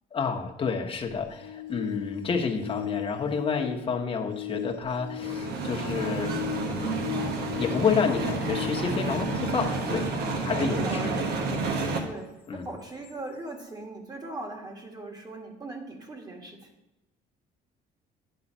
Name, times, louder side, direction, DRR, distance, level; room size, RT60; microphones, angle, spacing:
voice 1, 0.1-6.3 6.6-7.1 7.6-10.1 10.4-11.2 12.5-12.7, left 5 dB, 30° left, 2 dB, 1.1 m, -29 dB
sound 1, 1.0-10.7 13.0-13.1, left 12 dB, 85° left, 0.7 m, -37 dB
sound 2, 5.2-12.0, right 3 dB, 70° right, 1.2 m, -30 dB
voice 2, 8.9-9.3 10.7-11.5 12.0-16.7, right 2 dB, 25° right, 2 dB, 1.6 m, -39 dB
10.0 x 3.9 x 5.5 m, 0.97 s
cardioid pair, 110°, 17 cm